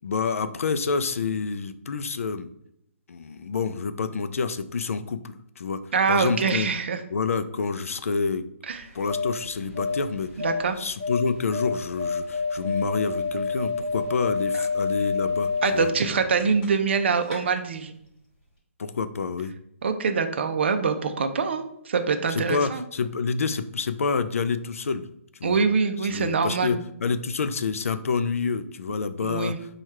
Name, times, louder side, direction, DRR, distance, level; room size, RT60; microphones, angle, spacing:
voice 1, 0.0-2.5 3.1-6.7 7.1-8.4 8.9-10.3 10.8-15.9 18.8-19.5 22.3-25.1 25.4-25.6 26.0-29.5, left 5 dB, 75° left, 11 dB, 0.4 m, -28 dB
voice 2, 5.9-7.0 8.6-8.8 10.4-10.8 14.5-14.6 15.6-17.9 19.8-22.8 25.4-26.8 29.2-29.6, right 5 dB, 55° right, 8 dB, 0.5 m, -24 dB
sound 1, 8.7-17.0 17.2-17.4, left 4 dB, 20° left, 1.4 m, -29 dB
4.6 x 2.3 x 4.3 m, 0.76 s
hypercardioid pair, 170°, 8 cm